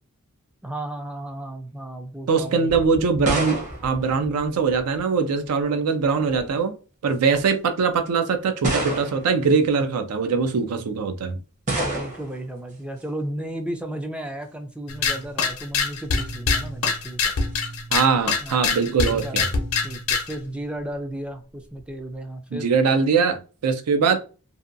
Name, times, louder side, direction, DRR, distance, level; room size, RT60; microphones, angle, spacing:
voice 1, 0.6-2.8 11.8-17.2 18.1-22.7, right 1 dB, 5° right, 0.3 m, -34 dB
voice 2, 2.3-6.8 7.0-11.4 17.9-19.4 22.5-24.2, right 5 dB, 85° right, 0.4 m, -22 dB
sound 1, 2.7-5.0 6.0-6.5 7.3-7.4 8.6-9.4 11.7-12.4, right 1 dB, 35° right, 0.7 m, -28 dB
sound 2, 14.9-20.4, left 5 dB, 70° left, 0.6 m, -25 dB
2.7 x 2.2 x 2.5 m
head